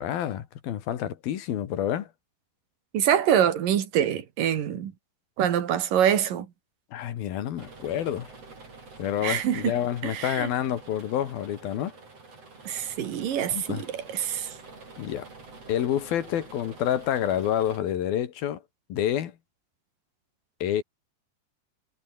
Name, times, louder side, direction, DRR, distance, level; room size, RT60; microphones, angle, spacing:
voice 1, 0.0-2.1 6.9-8.3 9.0-11.9 13.5-13.8 15.0-15.3 15.7-18.6 18.9-19.3 20.6-20.8, left 10 dB, 80° left, 3.7 m, -28 dB
voice 2, 2.9-4.9 5.4-6.5 9.2-9.7 10.0-10.5 12.6-14.5, right 9 dB, 70° right, 3.5 m, -25 dB
sound 1, 7.6-17.8, right 3 dB, 40° right, 7.3 m, -47 dB
omnidirectional pair, 4.2 m